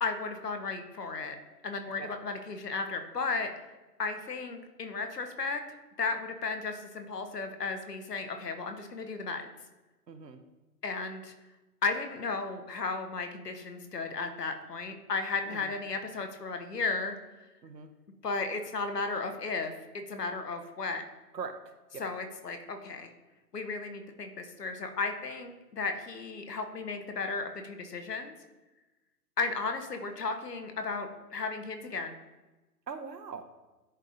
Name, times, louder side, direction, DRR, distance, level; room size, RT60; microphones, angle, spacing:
voice 1, 0.0-1.4 1.6-3.5 4.0-5.6 6.0-9.4 10.8-11.3 11.8-17.1 18.2-19.7 20.1-21.0 22.0-23.1 23.5-28.3 29.4-32.2, left 4 dB, 75° left, 6 dB, 1.0 m, -34 dB
voice 2, 10.1-10.4 15.5-15.7 17.6-17.9 21.3-22.0 32.9-33.5, right 5 dB, 85° right, 8 dB, 0.8 m, -41 dB
10.5 x 3.6 x 2.6 m, 1.1 s
figure-of-eight pair, 130°, 48 cm